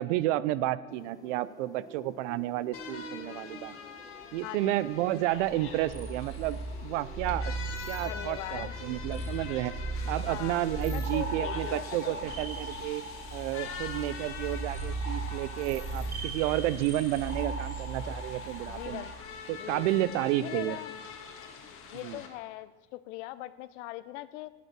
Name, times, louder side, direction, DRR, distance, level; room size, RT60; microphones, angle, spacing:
voice 1, 0.0-3.7 4.3-7.5 7.9-9.7 10.1-13.0 13.3-19.0 19.5-20.8 22.0-22.2, right 15 dB, 75° right, 17 dB, 0.6 m, -31 dB
sound 1, 0.9-19.0, left 2 dB, 10° left, 1.0 m, -53 dB
sound 2, 2.7-22.3, left 6 dB, 35° left, 1.6 m, -45 dB
voice 2, 4.4-4.8 8.0-8.8 10.3-10.6 10.9-12.2 18.7-19.1 19.5-19.9 20.4-20.9 21.9-24.5, left 16 dB, 75° left, 15 dB, 0.7 m, -41 dB
sound 3, 5.3-19.1, right 2 dB, 30° right, 3.1 m, -37 dB
11.0 x 8.2 x 5.9 m, 1.3 s
supercardioid pair, 120°, 36 cm